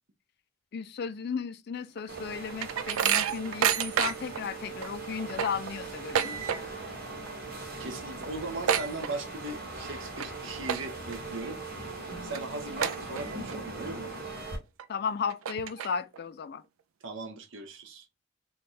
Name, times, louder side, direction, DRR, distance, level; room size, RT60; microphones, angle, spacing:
voice 1, 0.7-6.4 14.9-16.6, left 6 dB, 50° left, 0.3 m, -35 dB
sound 1, 2.0-4.4 4.8-4.9 5.2-6.9 7.2-7.5 7.8-7.9 8.2-9.6 10.0-10.3 10.6-11.2 11.7-11.8 12.3-12.4 12.8-13.5 14.0-14.1 14.8-14.9 15.3-16.2, right 9 dB, 85° right, 0.4 m, -29 dB
sound 2, 2.1-14.6, right 3 dB, 45° right, 1.6 m, -40 dB
voice 2, 7.8-11.6 12.0-14.1 17.0-18.1, right 2 dB, 65° right, 0.9 m, -38 dB
3.4 x 2.4 x 4.1 m
head